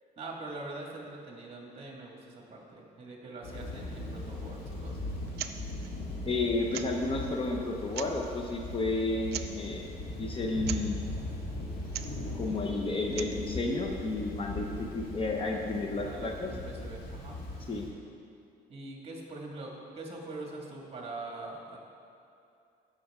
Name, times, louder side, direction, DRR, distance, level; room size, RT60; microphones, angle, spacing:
voice 1, 0.2-5.3 15.9-17.8 18.7-21.8, right 2 dB, 35° right, -1 dB, 2.0 m, -43 dB
Thunder / Rain, 3.4-17.9, left 2 dB, 65° left, 2.2 m, -39 dB
sound 1, 5.3-5.6 5.8-5.9 6.7-7.1 7.8-8.3 9.3-9.6 10.6-10.9 11.8-12.2 13.0-13.4, right 11 dB, 75° right, 0.5 m, -39 dB
voice 2, 6.2-9.9 10.2-11.0 12.3-16.5 17.7-17.9, left 2 dB, 30° left, 1 dB, 0.8 m, -32 dB
15.0 x 6.1 x 3.7 m, 2.5 s
cardioid pair, 110°, 17 cm